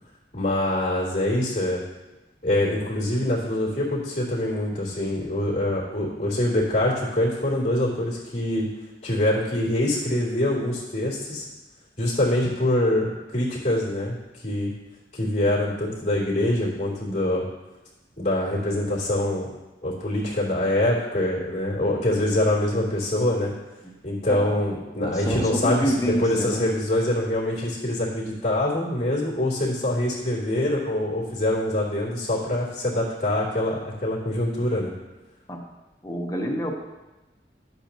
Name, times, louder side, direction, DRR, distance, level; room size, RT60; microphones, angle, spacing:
voice 1, 0.3-1.8 2.4-8.7 9.0-11.4 12.0-14.1 14.4-14.7 15.1-17.4 18.2-19.5 19.8-23.5 24.0-34.9, left 1 dB, 35° left, -6 dB, 3.0 m, -24 dB
voice 2, 24.3-24.6 25.0-26.7 35.5-35.7 36.0-36.8, equal, 20° left, 1 dB, 0.9 m, -27 dB
11.0 x 8.3 x 3.0 m, 1.1 s
head